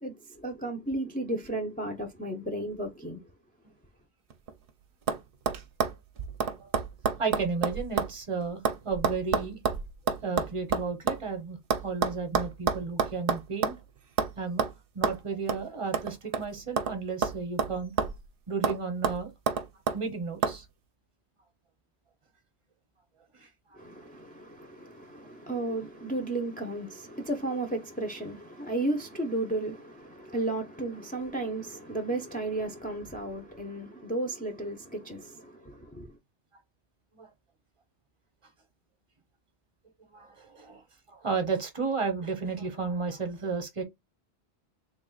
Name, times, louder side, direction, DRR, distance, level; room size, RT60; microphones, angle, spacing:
voice 1, 0.0-3.2 23.8-36.1, right 2 dB, 10° left, 0.4 m, -34 dB
sound 1, 4.3-4.7 5.1-5.2 5.5-8.2 8.4-11.2 11.7-13.8 14.2-14.3 14.6-14.7 15.0-15.2 15.5-15.6 15.9-17.0 17.2-18.3 18.6-18.8 19.0-20.0 20.4-20.6, right 6 dB, 60° right, 0.7 m, -29 dB
voice 2, 7.2-9.6 10.0-11.6 11.8-13.7 14.4-17.9 18.5-19.3 19.9-20.7 23.3-24.0 37.1-37.3 40.1-40.8 41.1-43.8, right 4 dB, 30° right, 0.9 m, -33 dB
3.5 x 2.4 x 3.8 m
omnidirectional pair, 1.2 m